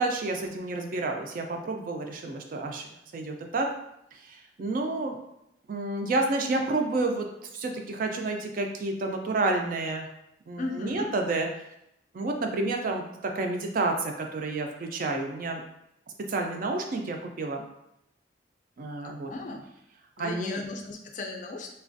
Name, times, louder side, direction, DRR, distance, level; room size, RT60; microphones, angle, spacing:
voice 1, 0.0-2.8 3.1-3.7 4.1-5.2 5.7-7.3 7.5-10.1 10.5-11.5 12.1-13.0 13.3-15.6 16.3-17.6 18.8-19.3 20.2-20.6, right 2 dB, 50° right, 3 dB, 0.4 m, -30 dB
voice 2, 10.6-11.1 19.0-19.7 20.2-21.7, left 2 dB, 45° left, 3 dB, 0.4 m, -36 dB
3.2 x 2.3 x 2.5 m, 0.80 s
head